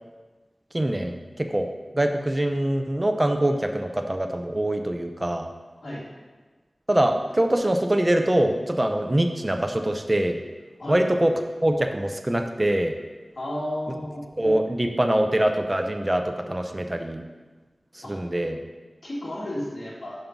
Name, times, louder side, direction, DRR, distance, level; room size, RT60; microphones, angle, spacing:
voice 1, 0.7-5.5 6.9-10.4 10.9-11.3 11.6-12.9 14.4-17.2 17.9-18.6, right 1 dB, 25° right, 5 dB, 0.6 m, -24 dB
voice 2, 13.4-14.3 18.0-18.2 19.0-20.2, left 1 dB, 65° left, -6 dB, 2.2 m, -32 dB
5.3 x 5.3 x 5.9 m, 1.3 s
wide cardioid pair, 55°, 0 cm